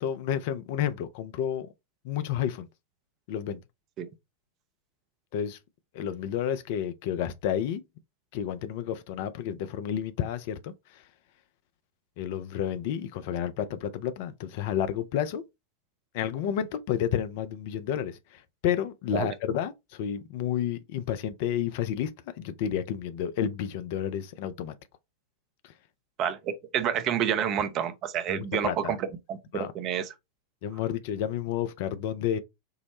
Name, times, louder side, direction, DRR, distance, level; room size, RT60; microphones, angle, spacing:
voice 1, 0.0-1.7 2.0-2.7 3.3-3.6 5.3-5.6 5.9-7.8 8.3-11.0 12.2-15.4 16.1-24.7 25.6-25.7 28.3-29.0 29.5-29.7 30.6-32.4, left 9 dB, 50° left, 0.4 m, -31 dB
voice 2, 26.2-30.1, right 9 dB, 35° right, 0.6 m, -29 dB
4.6 x 2.0 x 2.9 m
figure-of-eight pair, 90°, 0 cm